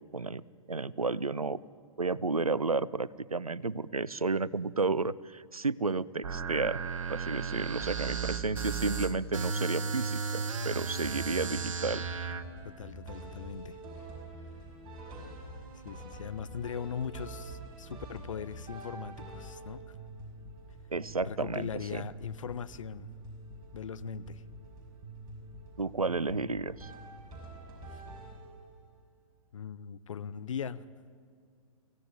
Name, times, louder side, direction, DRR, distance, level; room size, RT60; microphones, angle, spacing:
voice 1, 0.7-1.6 2.0-6.8 7.1-12.0 20.9-22.0 25.8-26.9, right 3 dB, 90° right, 21 dB, 0.6 m, -32 dB
sound 1, 6.2-12.4, right 5 dB, 60° right, 1.5 m, -34 dB
sound 2, 11.0-28.8, right 2 dB, 25° right, 5.8 m, -46 dB
voice 2, 12.6-13.8 15.8-19.9 21.2-23.1 23.7-24.4 29.5-30.8, left 7 dB, 65° left, 15 dB, 0.8 m, -40 dB
23.5 x 16.5 x 8.9 m, 2.2 s
figure-of-eight pair, 110°, 18 cm